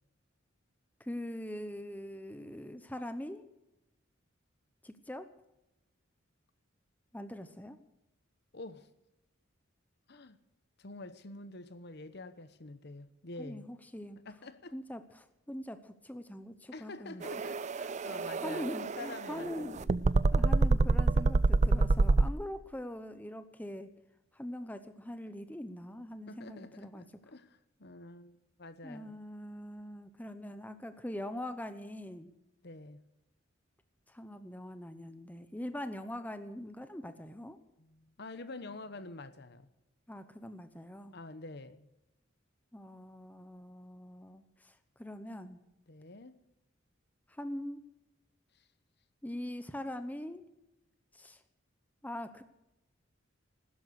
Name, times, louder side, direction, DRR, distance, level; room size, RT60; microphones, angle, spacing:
voice 1, 1.0-3.5 4.8-5.3 7.1-7.8 13.4-14.2 14.7-17.2 18.4-19.9 20.2-23.9 24.3-27.1 28.8-32.3 34.1-37.6 40.1-41.1 42.7-45.6 47.3-47.8 49.2-50.4 51.1-51.4 52.0-52.4, left 1 dB, 10° left, 0.8 m, -42 dB
voice 2, 8.5-8.9 10.1-10.4 10.8-13.7 14.2-14.8 16.7-19.7 26.3-29.2 32.6-33.0 37.8-39.7 41.1-41.9 45.9-46.3, left 2 dB, 55° left, 1.0 m, -47 dB
sound 1, 17.2-22.3, right 3 dB, 35° right, 0.4 m, -27 dB
16.0 x 12.5 x 6.4 m
head